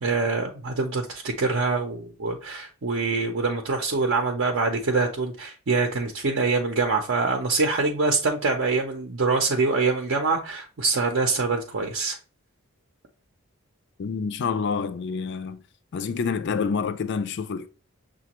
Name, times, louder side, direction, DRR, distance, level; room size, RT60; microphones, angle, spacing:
voice 1, 0.0-12.2, right 3 dB, 60° right, 0.6 m, -25 dB
voice 2, 14.0-15.6 15.9-17.7, left 5 dB, 55° left, 0.4 m, -27 dB
6.5 x 2.2 x 2.9 m
head